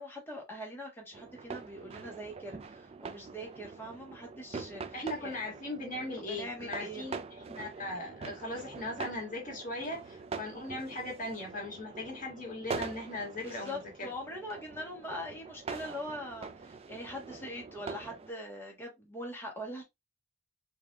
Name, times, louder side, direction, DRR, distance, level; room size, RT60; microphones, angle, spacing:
voice 1, 0.0-5.3 6.2-7.2 13.4-19.8, equal, 10° left, 1.4 m, -42 dB
sound 1, 1.1-18.3, right 5 dB, 30° right, 0.3 m, -44 dB
voice 2, 4.9-14.1, left 2 dB, 40° left, 1.6 m, -39 dB
4.6 x 2.7 x 2.4 m
head